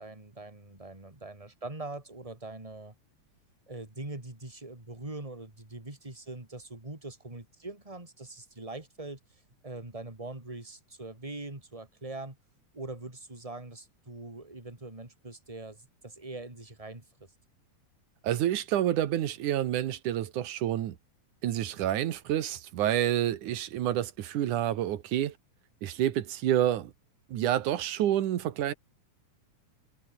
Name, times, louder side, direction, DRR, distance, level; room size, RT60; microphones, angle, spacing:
voice 1, 0.0-2.9 3.7-9.2 9.6-12.4 12.7-17.3, right 2 dB, 10° right, 3.7 m, -42 dB
voice 2, 18.2-21.0 21.4-25.3 25.8-26.9 27.3-28.7, right 12 dB, 70° right, 2.9 m, -28 dB
omnidirectional pair, 3.7 m